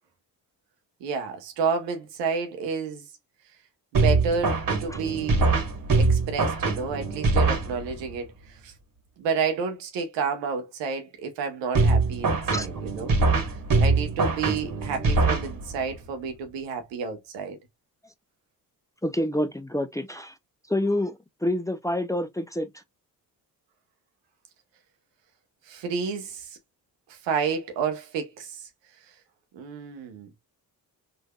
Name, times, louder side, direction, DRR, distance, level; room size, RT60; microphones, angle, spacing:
voice 1, 1.0-3.0 3.9-5.4 6.0-8.7 9.2-13.1 13.8-17.6 25.7-26.5 27.2-28.6 29.5-30.3, right 5 dB, 90° right, 0.9 m, -30 dB
sound 1, 3.9-8.1 11.7-16.0, right 3 dB, 50° right, 1.3 m, -23 dB
voice 2, 19.0-20.3 20.7-22.7, left 1 dB, 10° left, 0.5 m, -27 dB
3.7 x 2.7 x 2.2 m
supercardioid pair, 55°, 43 cm